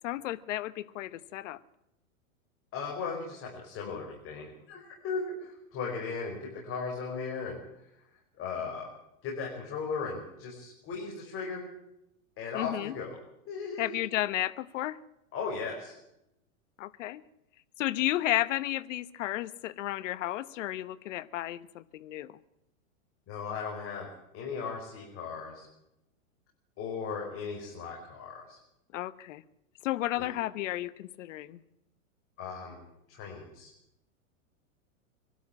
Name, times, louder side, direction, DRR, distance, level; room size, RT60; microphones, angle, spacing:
voice 1, 0.0-1.6 12.5-12.9 13.8-15.0 16.8-17.2 17.8-22.3 28.9-29.4 29.8-31.6, left 15 dB, 60° left, 17 dB, 1.1 m, -33 dB
voice 2, 2.7-7.6 8.4-8.9 9.2-11.7 12.4-13.2 13.5-14.0 15.3-16.0 23.3-24.1 24.3-25.7 26.8-28.6 30.2-30.3 32.4-32.8 33.1-33.7, left 5 dB, 30° left, -1 dB, 5.4 m, -37 dB
25.5 x 12.5 x 8.7 m, 0.85 s
hypercardioid pair, 135°, 41 cm